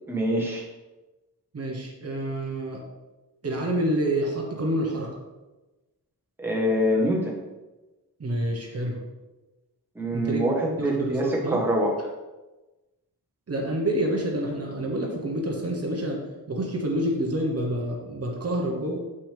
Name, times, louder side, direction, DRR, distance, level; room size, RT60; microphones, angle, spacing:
voice 1, 0.1-0.6 6.4-7.4 10.0-11.9, equal, 5° right, -2 dB, 1.2 m, -25 dB
voice 2, 1.5-2.8 3.4-5.1 8.2-9.0 10.1-10.4 10.8-11.6 13.5-16.2 16.5-19.0, right 1 dB, 40° right, 0 dB, 1.1 m, -28 dB
7.2 x 6.1 x 3.4 m, 1.1 s
wide cardioid pair, 145°, 37 cm